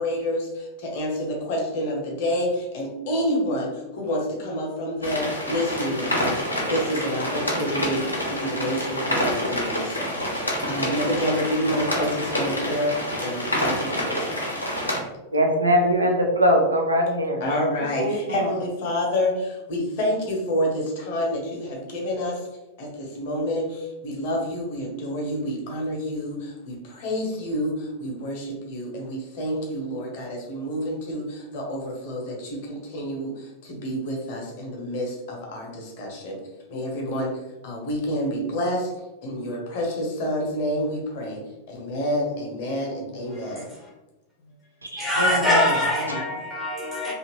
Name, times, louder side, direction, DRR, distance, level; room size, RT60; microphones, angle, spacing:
voice 1, 0.0-14.5 17.4-22.5 22.8-36.4 36.7-38.9 39.2-43.7, equal, 50° left, 0 dB, 0.9 m, -28 dB
sound 1, 5.0-15.0, equal, 85° left, 0.7 m, -27 dB
voice 2, 15.3-17.4 17.8-18.5 44.9-46.2, equal, 80° right, 1 dB, 0.5 m, -22 dB
voice 3, 45.0-47.1, left 1 dB, 5° left, -5 dB, 0.7 m, -23 dB
2.8 x 2.5 x 2.9 m, 1.0 s
figure-of-eight pair, 90°, 0 cm